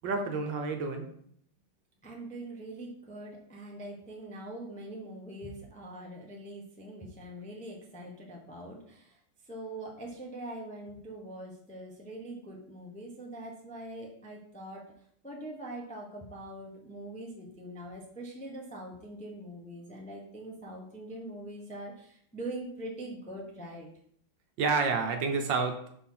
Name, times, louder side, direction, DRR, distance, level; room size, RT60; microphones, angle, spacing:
voice 1, 0.0-1.1 24.6-25.8, right 4 dB, 70° right, 5 dB, 1.3 m, -29 dB
voice 2, 2.0-14.8 15.2-23.9, right 1 dB, 5° left, -1 dB, 0.5 m, -43 dB
5.4 x 4.3 x 5.7 m, 0.67 s
omnidirectional pair, 2.3 m